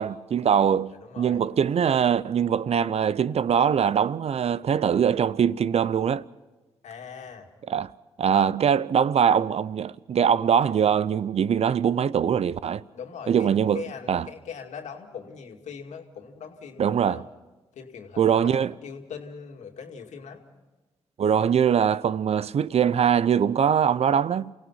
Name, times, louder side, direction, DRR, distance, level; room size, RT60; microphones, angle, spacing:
voice 1, 0.0-6.3 7.7-7.9 8.2-12.8 13.3-13.8 14.1-14.3 16.8-17.2 18.2-18.7 21.2-24.5, right 8 dB, 60° right, 0.6 m, -22 dB
voice 2, 0.9-1.4 6.8-7.5 12.9-17.3 17.7-20.4, left 6 dB, 70° left, 2.3 m, -41 dB
28.5 x 16.5 x 5.7 m
hypercardioid pair, 40°, 12 cm